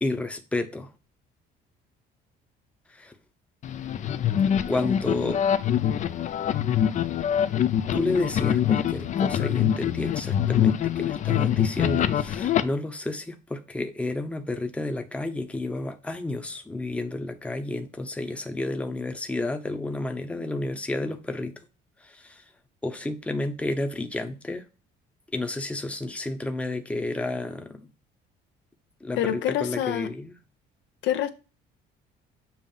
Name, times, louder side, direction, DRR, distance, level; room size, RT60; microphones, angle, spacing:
voice 1, 0.0-0.9 2.9-3.1 4.7-5.4 7.9-21.5 22.0-22.4 22.8-24.7 25.3-27.9 29.0-30.3, left 2 dB, 5° left, 0.8 m, -31 dB
sound 1, 3.6-12.6, left 9 dB, 40° left, 0.4 m, -24 dB
voice 2, 29.2-30.1 31.0-31.3, left 11 dB, 75° left, 0.7 m, -26 dB
7.2 x 2.5 x 5.5 m
cardioid pair, 135°, 19 cm